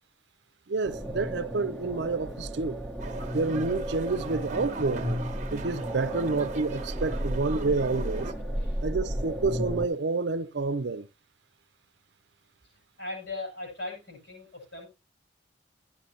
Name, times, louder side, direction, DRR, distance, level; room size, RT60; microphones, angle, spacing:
voice 1, 0.7-2.8 3.3-5.2 5.5-8.3 8.8-11.1, right 3 dB, 65° right, 0.6 m, -29 dB
sound 1, 0.8-9.9, equal, 5° left, 1.1 m, -34 dB
sound 2, 3.0-8.3, right 3 dB, 40° right, 0.9 m, -41 dB
voice 2, 13.0-14.9, left 2 dB, 70° left, 6.3 m, -38 dB
13.5 x 9.9 x 2.8 m
head